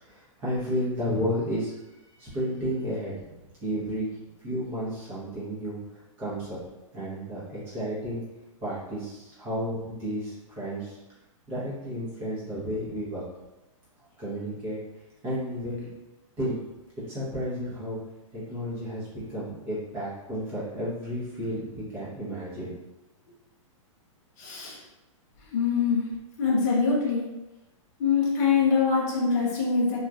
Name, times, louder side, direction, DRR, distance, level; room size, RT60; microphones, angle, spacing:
voice 1, 0.1-1.7 2.2-3.3 3.6-4.1 4.4-5.8 6.2-6.6 6.9-8.2 8.6-10.9 11.5-13.2 14.2-14.8 15.2-15.9 16.4-16.6 17.1-18.0 18.3-22.7, equal, 15° right, -9 dB, 0.7 m, -32 dB
voice 2, 24.4-24.8 25.5-26.0 26.4-27.2 28.0-30.0, left 5 dB, 30° left, -5 dB, 0.5 m, -24 dB
2.8 x 2.3 x 2.3 m, 1.0 s
hypercardioid pair, 175°, 17 cm